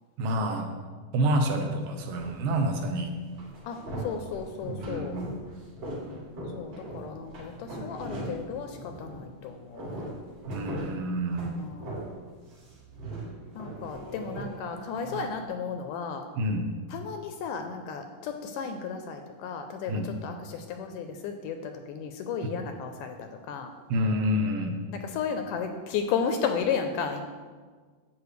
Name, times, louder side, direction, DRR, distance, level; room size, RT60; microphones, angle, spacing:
voice 1, 0.2-0.7 1.1-3.2 4.7-5.4 10.5-11.6 16.4-16.7 19.9-20.1 22.4-22.6 23.9-24.8, equal, 75° right, 4 dB, 2.5 m, -28 dB
sound 1, 2.2-2.9 3.3-9.3 9.6-12.2 12.5-15.2, right 1 dB, 45° right, 3.9 m, -39 dB
voice 2, 4.0-5.1 6.6-9.9 11.6-11.9 13.6-16.2 16.9-23.7 25.0-27.3, left 6 dB, 80° left, 6 dB, 2.0 m, -34 dB
12.0 x 7.8 x 3.2 m, 1.5 s
omnidirectional pair, 4.1 m